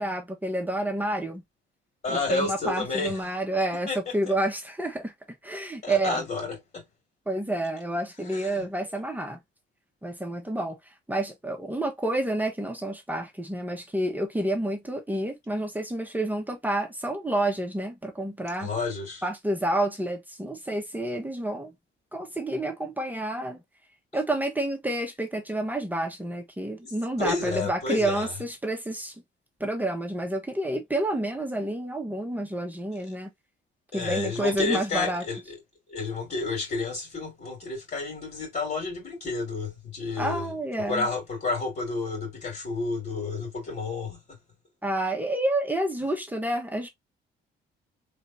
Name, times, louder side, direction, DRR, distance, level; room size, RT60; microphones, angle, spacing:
voice 1, 0.0-1.4 2.1-5.1 5.4-6.2 7.3-9.4 10.0-10.8 11.1-18.7 19.2-21.7 22.1-23.6 24.1-29.1 29.6-33.3 33.9-35.2 40.2-41.1 44.8-46.9, right 1 dB, 10° right, 1.1 m, -29 dB
voice 2, 2.0-3.3 3.9-4.1 5.8-6.8 8.3-8.7 18.6-19.2 26.8-26.9 27.2-28.3 33.9-35.6 35.9-40.5 40.9-44.2, left 3 dB, 45° left, 2.5 m, -31 dB
3.6 x 3.4 x 2.7 m
cardioid pair, 90°, 20 cm